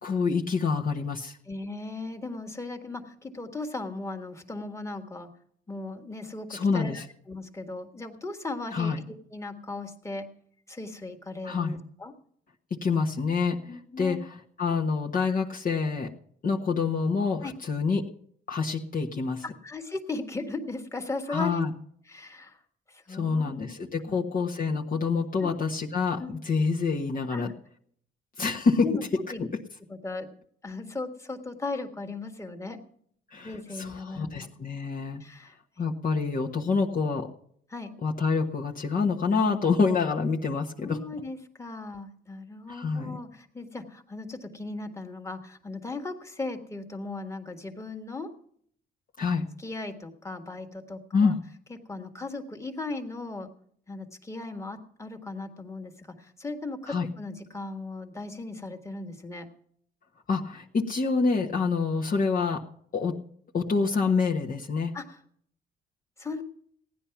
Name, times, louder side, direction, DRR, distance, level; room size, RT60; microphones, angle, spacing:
voice 1, 0.0-1.4 6.5-7.0 8.7-9.0 11.4-11.7 12.8-13.6 14.0-14.2 14.6-16.1 16.4-18.0 18.5-19.4 21.3-21.7 23.1-27.5 28.4-28.9 29.4-29.5 33.3-35.2 35.8-37.3 38.0-41.0 42.7-43.2 49.2-49.5 51.1-51.4 56.9-57.1 60.3-62.6 62.9-63.2 63.5-65.0, left 4 dB, 45° left, -1 dB, 1.3 m, -27 dB
voice 2, 1.5-5.3 5.7-9.0 9.3-10.3 10.7-12.1 13.7-14.2 17.4-17.5 19.4-21.6 22.1-22.6 22.9-23.8 24.1-24.2 25.4-25.5 26.2-26.4 27.3-27.4 28.8-29.0 29.3-29.4 29.9-30.3 30.6-32.8 33.4-34.5 35.2-35.9 37.7-37.9 40.8-48.3 49.6-51.3 51.7-53.5 53.9-59.5 64.9-65.2 66.2-66.4, left 3 dB, 15° left, 4 dB, 1.8 m, -37 dB
15.5 x 10.5 x 5.9 m, 0.62 s
cardioid pair, 90°, 20 cm